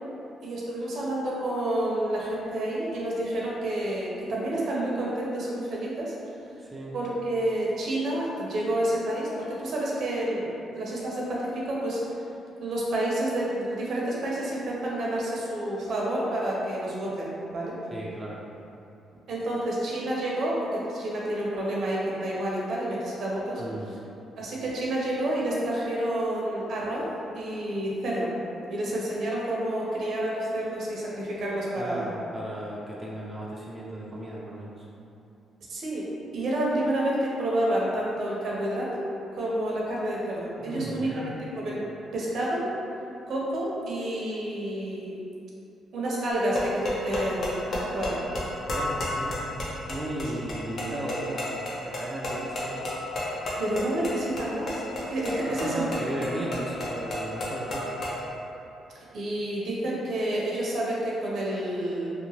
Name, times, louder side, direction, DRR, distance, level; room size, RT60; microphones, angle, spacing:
voice 1, 0.4-6.1 6.9-12.0 12.6-17.8 19.3-23.6 24.4-27.1 27.3-28.3 28.7-32.1 35.7-36.1 36.3-39.0 39.3-41.9 42.1-42.7 43.3-45.1 45.9-48.2 53.6-56.1 58.9-62.1, right 1 dB, 65° right, -5 dB, 0.6 m, -29 dB
voice 2, 6.6-6.9 17.9-18.4 23.6-23.9 31.8-34.9 40.6-41.3 48.7-49.4 49.9-52.9 55.4-57.9, right 1 dB, 15° right, -5 dB, 0.4 m, -35 dB
sound 1, 46.3-58.2, left 1 dB, 55° left, 0.6 m, -32 dB
2.9 x 2.1 x 2.8 m, 2.7 s
cardioid pair, 90°, 0 cm